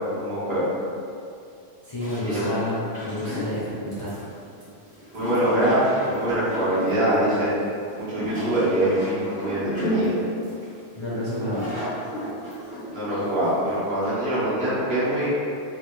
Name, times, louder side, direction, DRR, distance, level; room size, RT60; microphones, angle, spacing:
voice 1, 0.1-0.7 2.2-2.6 5.1-7.5 8.0-10.1 12.9-15.3, right 1 dB, 75° right, -12 dB, 1.5 m, -24 dB
voice 2, 1.8-4.2 10.9-11.6, left 1 dB, 35° left, -10 dB, 0.5 m, -29 dB
sound 1, 2.0-14.1, equal, 55° right, 1.4 m, -34 dB
3.3 x 2.5 x 3.0 m, 2.4 s
omnidirectional pair, 1.1 m